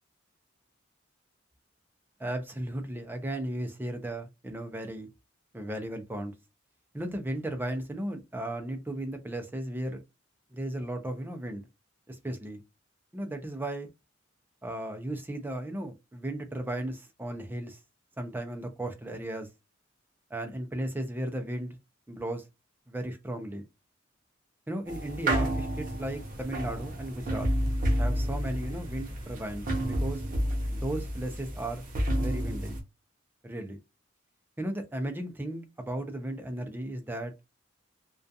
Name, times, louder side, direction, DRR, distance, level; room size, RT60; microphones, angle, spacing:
voice 1, 2.2-5.1 5.5-6.3 6.9-10.0 10.5-11.6 12.1-12.6 13.1-13.9 14.6-17.8 18.2-19.5 20.3-21.8 22.1-22.4 22.9-23.6 24.7-27.5 27.9-30.2 30.7-31.8 32.2-32.7 33.4-33.8 34.6-37.3, right 1 dB, 10° right, 0.4 m, -35 dB
sound 1, 24.9-32.8, equal, 45° right, 0.7 m, -30 dB
2.4 x 2.3 x 2.6 m
head